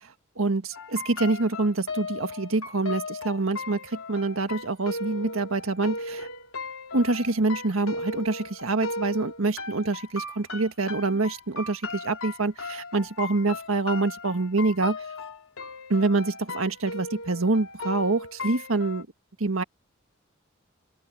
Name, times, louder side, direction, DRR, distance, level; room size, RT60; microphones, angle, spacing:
voice 1, 0.4-6.3 6.9-15.0 15.9-19.1 19.4-19.6, right 3 dB, 80° right, 1.6 m, -26 dB
sound 1, 0.7-19.0, left 3 dB, 80° left, 3.5 m, -37 dB
open air
head